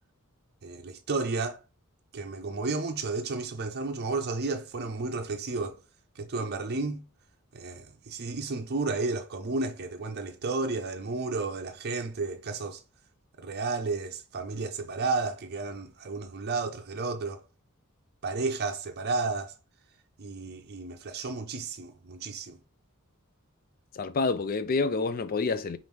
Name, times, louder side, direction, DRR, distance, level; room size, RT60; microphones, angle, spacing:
voice 1, 0.6-1.6 2.1-5.8 6.2-7.0 7.5-12.8 13.4-17.4 18.2-19.5 20.2-22.6, right 3 dB, 45° right, 0.5 m, -32 dB
voice 2, 23.9-25.8, left 4 dB, 40° left, 0.4 m, -28 dB
5.2 x 2.5 x 3.0 m
head